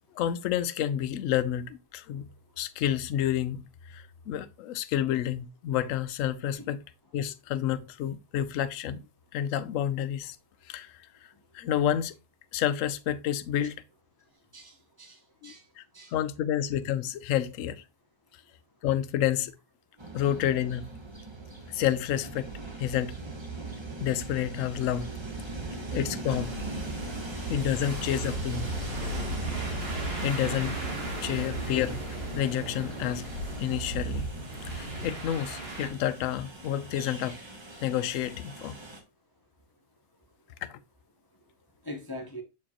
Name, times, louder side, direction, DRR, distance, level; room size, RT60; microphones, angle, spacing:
voice 1, 0.1-2.3 2.6-6.8 7.1-9.0 9.3-10.4 10.7-11.1 11.5-12.1 12.5-13.8 15.4-15.8 16.1-17.8 18.8-19.5 20.1-20.9 21.7-22.5 22.8-23.2 24.0-25.1 25.9-26.6 27.5-28.7 30.2-30.8 31.2-32.0 32.3-33.3 33.6-34.3 34.7-37.4 37.8-38.8 40.6-40.8, left 11 dB, 65° left, 0.8 m, -29 dB
voice 2, 14.5-15.6 15.9-16.1 27.3-27.4 29.5-29.6 41.8-42.4, equal, 25° left, 0.4 m, -43 dB
Train, 20.0-39.0, right 3 dB, 25° right, 0.7 m, -40 dB
sound 1, 26.2-35.9, right 1 dB, 40° right, 1.7 m, -36 dB
7.2 x 4.6 x 2.9 m
omnidirectional pair, 1.6 m